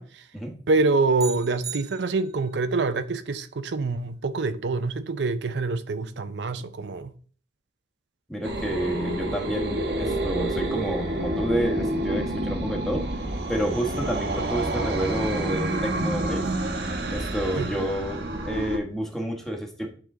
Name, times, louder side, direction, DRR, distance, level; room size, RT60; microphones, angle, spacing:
voice 1, 0.7-7.1 17.6-17.7, right 3 dB, 85° right, 0.6 m, -26 dB
sound 1, 1.2-2.6, right 7 dB, 20° right, 0.3 m, -38 dB
voice 2, 8.3-13.1 13.5-16.5 17.1-19.9, right 1 dB, ahead, 1.1 m, -29 dB
sound 2, 8.4-18.8, right 1 dB, 70° right, 1.1 m, -28 dB
9.2 x 3.7 x 3.7 m
head